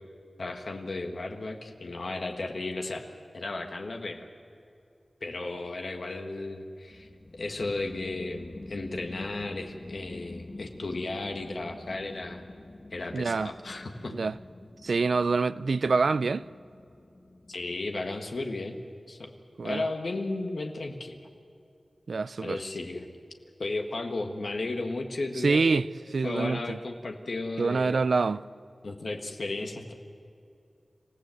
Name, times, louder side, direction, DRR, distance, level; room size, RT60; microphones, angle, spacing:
voice 1, 0.4-3.0 3.3-4.3 5.2-7.1 7.3-12.4 12.9-14.1 17.5-18.8 19.1-19.3 19.6-21.2 22.4-23.1 23.6-25.8 26.2-28.0 28.8-29.9, left 2 dB, 70° left, 1.6 m, -34 dB
sound 1, 6.9-19.0, left 2 dB, 40° left, 1.3 m, -47 dB
voice 2, 13.1-13.5 14.1-14.3 14.8-16.4 19.6-19.8 22.1-22.6 25.4-25.9 26.1-26.8 27.6-28.4, right 4 dB, 80° right, 0.5 m, -26 dB
27.0 x 16.0 x 7.8 m
wide cardioid pair, 85°, 0 cm